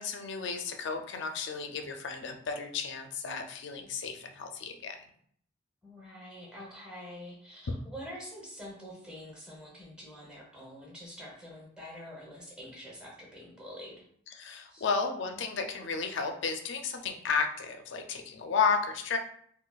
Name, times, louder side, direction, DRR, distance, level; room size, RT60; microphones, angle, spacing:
voice 1, 0.0-5.0 14.3-19.2, left 5 dB, 60° left, 5 dB, 0.4 m, -33 dB
voice 2, 5.8-14.0 14.7-14.9, equal, 5° right, -5 dB, 0.9 m, -46 dB
3.9 x 2.2 x 2.3 m, 0.63 s
head